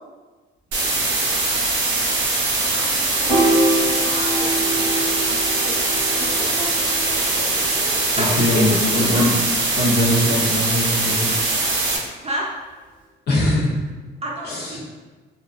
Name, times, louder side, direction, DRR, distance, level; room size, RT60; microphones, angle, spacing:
sound 1, 0.7-12.0, right 2 dB, 75° right, 0.6 m, -22 dB
voice 1, 2.7-6.5 8.2-9.3 12.2-12.5 14.2-14.8, right 1 dB, 30° right, -3 dB, 0.5 m, -32 dB
Piano, 3.3-9.7, right 1 dB, 5° left, 1.1 m, -26 dB
voice 2, 6.4-8.6, left 1 dB, 25° left, -5 dB, 0.8 m, -36 dB
voice 3, 8.1-9.3 9.8-11.3 13.3-13.7 14.4-14.8, left 1 dB, 55° left, -4 dB, 0.7 m, -21 dB
2.6 x 2.2 x 2.2 m, 1.3 s
cardioid pair, 90°, 20 cm